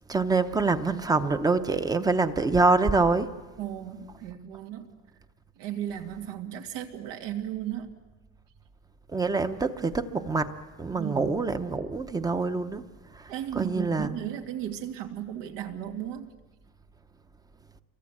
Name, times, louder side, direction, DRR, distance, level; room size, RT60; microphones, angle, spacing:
voice 1, 0.1-3.3 9.1-10.5 10.8-12.8 13.1-14.2, right 3 dB, 10° right, 0.8 m, -25 dB
voice 2, 3.6-4.9 5.6-8.0 10.9-11.3 13.3-16.3, right 10 dB, 90° right, 2.7 m, -35 dB
28.0 x 23.5 x 8.5 m
cardioid pair, 180°, 33 cm